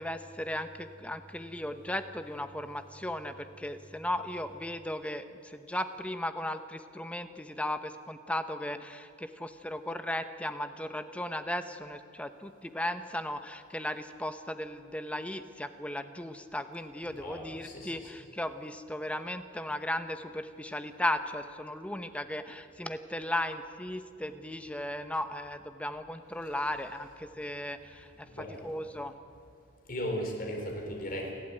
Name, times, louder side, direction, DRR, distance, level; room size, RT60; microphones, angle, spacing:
voice 1, 0.0-29.1, left 1 dB, 5° left, 9 dB, 0.9 m, -36 dB
voice 2, 17.1-18.1 26.4-26.5 28.3-28.7 29.9-31.3, equal, 45° left, 1 dB, 4.5 m, -37 dB
29.0 x 12.0 x 9.1 m, 2.5 s
head